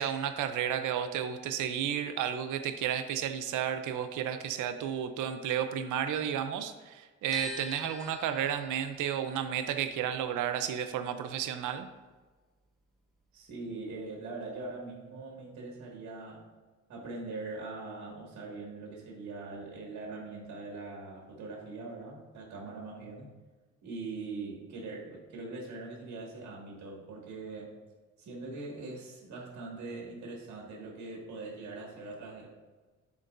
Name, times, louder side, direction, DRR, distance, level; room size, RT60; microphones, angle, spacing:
voice 1, 0.0-11.9, right 9 dB, 80° right, 9 dB, 0.7 m, -32 dB
sound 1, 7.3-13.4 13.6-14.9, left 1 dB, ahead, 1.0 m, -47 dB
voice 2, 13.3-16.5 16.9-23.3 23.8-27.7 28.2-32.5, right 3 dB, 65° right, -2 dB, 2.1 m, -42 dB
10.5 x 4.6 x 2.6 m, 1.3 s
cardioid pair, 90°, 30 cm